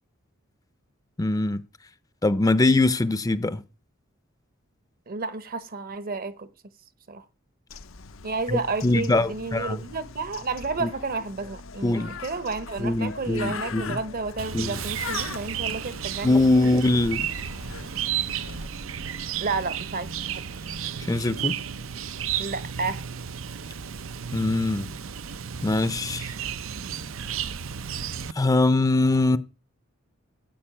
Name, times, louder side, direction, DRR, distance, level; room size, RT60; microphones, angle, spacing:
voice 1, 1.2-1.6 2.2-3.6 8.5-9.8 10.8-10.9 11.8-12.1 12.8-14.0 14.5-14.8 16.2-17.3 21.0-21.6 24.3-24.9 25.6-26.3 28.3-29.4, left 2 dB, 20° left, 0.6 m, -22 dB
voice 2, 5.1-6.5 7.1-7.2 8.2-16.7 19.4-20.7 22.4-23.0, right 4 dB, 45° right, 1.0 m, -31 dB
Bird, 7.7-18.7, left 5 dB, 85° left, 0.9 m, -41 dB
Chirp tweet, 14.4-28.3, right 8 dB, 80° right, 0.6 m, -33 dB
13.0 x 5.5 x 8.9 m
head